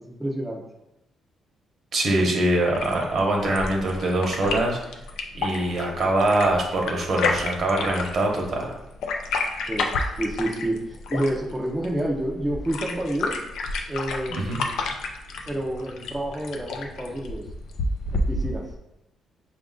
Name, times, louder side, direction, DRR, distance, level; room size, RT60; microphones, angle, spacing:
voice 1, 0.1-0.6 2.2-2.3 9.7-9.9 10.2-13.4 13.9-14.9 15.5-17.4 18.1-18.6, right 1 dB, 5° right, -3 dB, 0.6 m, -29 dB
voice 2, 1.9-4.8 5.3-8.7 14.4-14.6, right 1 dB, 50° right, 1 dB, 0.9 m, -23 dB
sound 1, 2.7-18.7, left 3 dB, 80° left, 0.4 m, -31 dB
5.0 x 2.4 x 3.7 m, 0.93 s
cardioid pair, 115°, 0 cm